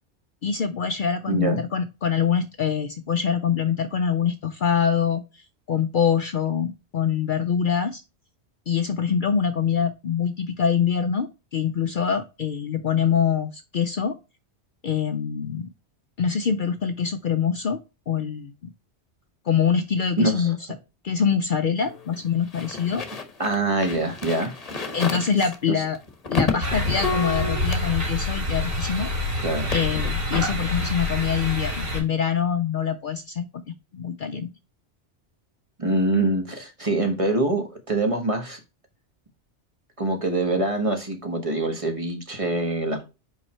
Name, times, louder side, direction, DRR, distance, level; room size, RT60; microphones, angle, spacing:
voice 1, 0.4-8.0 8.7-14.2 14.8-15.7 16.2-17.8 18.1-18.5 19.5-20.6 21.0-23.0 24.9-26.0 26.3-29.1 29.7-34.5, left 7 dB, 55° left, 0.6 m, -24 dB
voice 2, 1.3-1.6 20.2-20.5 23.4-24.5 25.7-25.8 29.4-29.7 35.8-38.6 40.0-43.0, right 2 dB, 30° right, 1.5 m, -24 dB
sound 1, 21.8-29.1 29.4-30.2, left 3 dB, 35° left, 1.1 m, -31 dB
sound 2, 26.6-32.0, left 1 dB, 65° right, 4.1 m, -27 dB
5.4 x 4.9 x 4.3 m
omnidirectional pair, 1.1 m